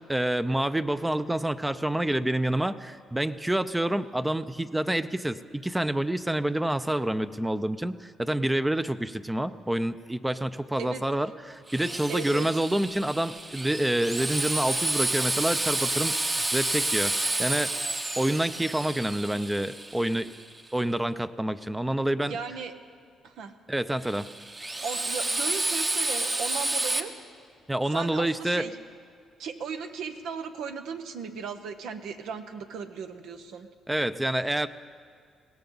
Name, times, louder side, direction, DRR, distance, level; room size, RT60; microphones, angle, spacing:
voice 1, 0.1-17.7 18.2-20.3 20.7-22.4 23.7-24.3 27.7-28.7 33.9-34.7, right 1 dB, 10° right, 12 dB, 0.5 m, -28 dB
Drill, 11.7-20.6 24.0-27.0, right 2 dB, 25° right, 1.0 m, -30 dB
voice 2, 12.1-12.5 22.3-22.7 23.2-23.5 24.8-27.1 27.9-28.8 29.4-33.7, right 6 dB, 80° right, 7 dB, 1.0 m, -36 dB
21.5 x 17.0 x 3.9 m, 2.3 s
cardioid pair, 90°, 0 cm